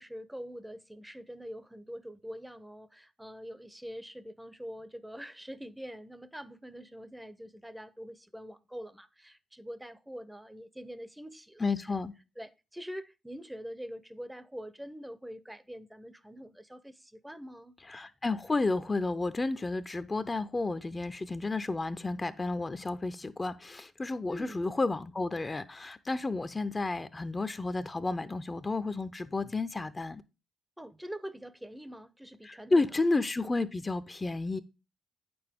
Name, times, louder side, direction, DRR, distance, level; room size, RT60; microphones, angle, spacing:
voice 1, 0.0-11.9 12.4-17.7 24.3-24.6 30.8-33.0, equal, 5° right, 0.7 m, -44 dB
voice 2, 11.6-12.1 17.9-30.2 32.4-34.6, left 3 dB, 25° left, 0.6 m, -31 dB
8.6 x 6.9 x 3.6 m
supercardioid pair, 55°, 0 cm